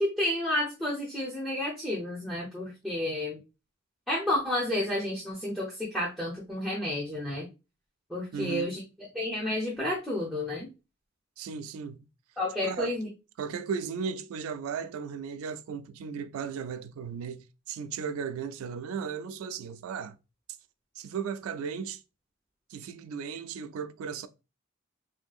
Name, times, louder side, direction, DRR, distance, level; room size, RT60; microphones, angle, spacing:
voice 1, 0.0-3.4 4.1-7.5 8.1-8.8 9.1-10.7 12.4-13.1, left 1 dB, ahead, 0.5 m, -31 dB
voice 2, 8.3-8.7 11.4-12.0 12.6-12.9 13.4-20.2 21.0-22.0 22.7-24.3, right 6 dB, 85° right, 0.3 m, -36 dB
3.2 x 2.6 x 2.3 m
head